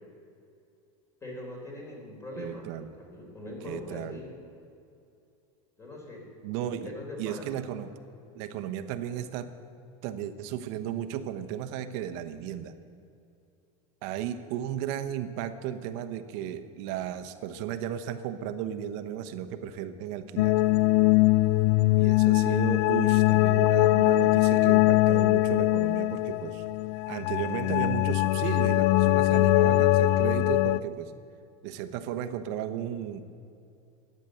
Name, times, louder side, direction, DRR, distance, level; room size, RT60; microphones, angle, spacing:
voice 1, 1.2-2.7 3.0-4.3 5.8-6.3 6.6-7.4 22.5-22.6, left 1 dB, 15° left, 0 dB, 4.0 m, -42 dB
voice 2, 2.4-2.9 3.6-4.2 6.4-6.9 7.2-7.9 8.3-9.5 10.0-12.7 14.0-20.6 22.0-26.6 27.1-31.1 31.6-33.2, right 10 dB, 60° right, 9 dB, 1.1 m, -34 dB
sound 1, 20.4-30.8, left 17 dB, 65° left, 0.4 m, -22 dB
14.5 x 9.8 x 7.9 m, 2.6 s
supercardioid pair, 150°, 17 cm